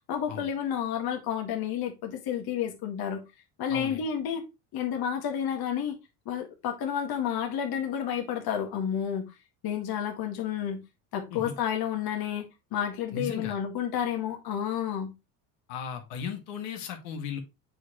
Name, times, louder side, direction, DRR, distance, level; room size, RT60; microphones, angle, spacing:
voice 1, 0.1-3.2 3.6-4.4 4.7-6.0 6.3-9.4 9.6-10.8 11.1-12.5 12.7-15.1, left 9 dB, 50° left, 1.9 m, -30 dB
voice 2, 3.7-4.0 11.3-11.5 13.1-13.6 15.7-17.4, left 6 dB, 65° left, 2.0 m, -36 dB
7.7 x 5.2 x 3.0 m
hypercardioid pair, 80°, 48 cm